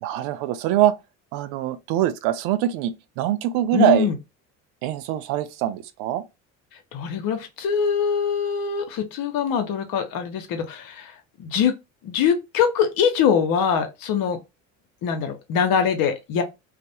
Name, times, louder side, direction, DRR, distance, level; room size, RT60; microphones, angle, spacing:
voice 1, 0.0-0.9 1.3-4.1 4.8-6.2, right 12 dB, 65° right, 0.5 m, -23 dB
voice 2, 3.7-4.2 6.9-11.1 11.4-11.7 12.0-14.4 15.0-16.4, left 7 dB, 55° left, 0.8 m, -23 dB
2.4 x 2.0 x 2.7 m
hypercardioid pair, 70°, 41 cm